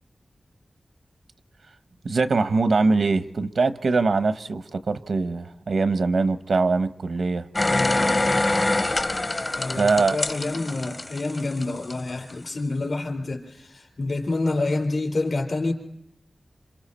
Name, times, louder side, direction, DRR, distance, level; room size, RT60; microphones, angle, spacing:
voice 1, 2.0-7.4 9.7-10.2, right 3 dB, 85° right, 11 dB, 1.0 m, -22 dB
sound 1, 7.5-11.9 12.3-12.4, left 2 dB, 35° left, 0.8 m, -25 dB
voice 2, 7.7-8.5 9.6-15.7, left 2 dB, 65° left, 2 dB, 4.4 m, -28 dB
27.5 x 27.0 x 4.3 m, 0.81 s
wide cardioid pair, 95°, 0 cm